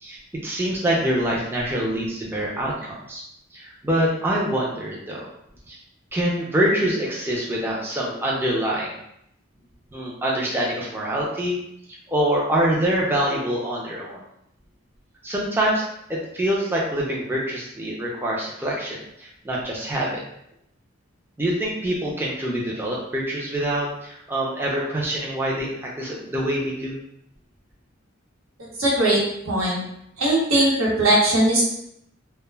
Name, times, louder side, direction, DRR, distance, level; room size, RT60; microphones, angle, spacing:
voice 1, 0.0-3.2 3.5-5.3 5.7-5.8 6.1-9.0 9.9-11.6 12.1-14.2 15.2-15.8 16.1-20.2 21.4-27.0, right 1 dB, 10° right, -4 dB, 0.4 m, -25 dB
voice 2, 28.8-29.2 29.4-29.8 30.2-31.7, right 1 dB, 85° right, -5 dB, 0.9 m, -19 dB
2.1 x 2.1 x 3.2 m, 0.75 s
head